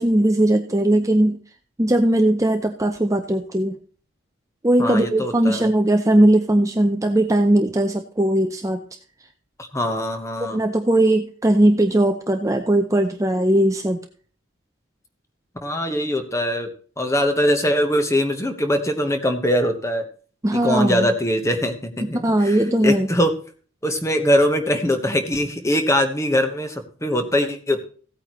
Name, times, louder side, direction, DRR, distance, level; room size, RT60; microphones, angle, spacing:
voice 1, 0.0-1.4 1.8-3.8 4.6-8.8 10.4-14.0 20.4-21.1 22.0-23.1, right 1 dB, 15° right, 5 dB, 0.6 m, -19 dB
voice 2, 4.8-5.7 9.6-10.6 15.6-16.7 17.0-20.0 20.5-23.3 23.8-27.8, equal, 15° left, 6 dB, 1.1 m, -22 dB
16.0 x 8.8 x 3.1 m, 0.42 s
head